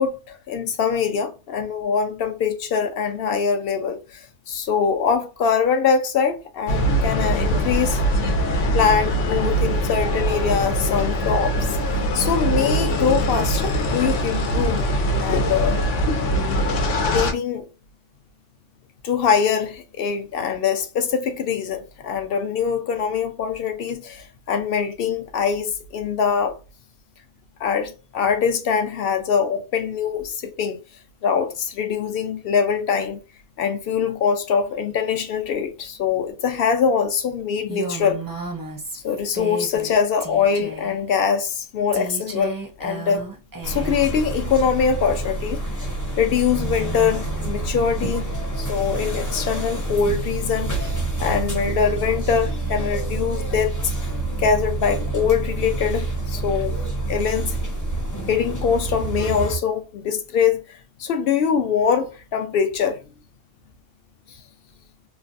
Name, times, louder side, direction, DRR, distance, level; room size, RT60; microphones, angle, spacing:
voice 1, 0.0-8.0 8.7-11.6 11.9-14.8 15.2-15.8 17.0-17.7 19.0-26.6 27.6-30.8 31.2-33.2 33.6-38.2 39.0-43.2 43.6-45.6 46.2-48.3 48.6-50.7 51.2-53.9 54.4-56.8 57.1-57.6 58.3-60.6 61.0-63.0, left 6 dB, 60° left, 0.7 m, -23 dB
sound 1, 6.7-17.3, equal, 80° left, 1.0 m, -22 dB
Female speech woman speaking, 37.7-39.9 40.2-41.0 41.9-44.0, right 3 dB, 25° right, 0.5 m, -34 dB
sound 2, 43.6-59.6, right 2 dB, 20° left, 0.6 m, -27 dB
3.2 x 2.2 x 2.5 m
omnidirectional pair, 1.3 m